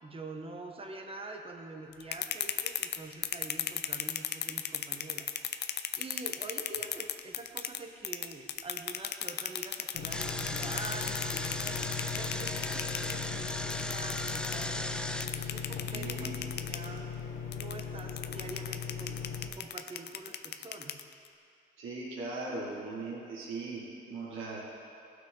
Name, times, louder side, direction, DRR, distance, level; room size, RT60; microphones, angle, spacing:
voice 1, 0.0-11.8 12.2-17.1 17.5-21.0, right 2 dB, 30° right, 3 dB, 1.2 m, -46 dB
Brinquedo Matraca, 1.9-7.8 8.0-14.6 15.2-16.9 17.5-21.3, left 10 dB, 60° left, 0.5 m, -35 dB
sound 1, 9.9-19.5, left 6 dB, 90° left, 1.0 m, -39 dB
Engine, 10.1-15.3, left 1 dB, 5° left, 0.5 m, -37 dB
voice 2, 15.9-16.4 21.8-24.6, right 3 dB, 85° right, -6 dB, 1.9 m, -39 dB
17.0 x 6.1 x 3.9 m, 2.4 s
cardioid pair, 90°, 20 cm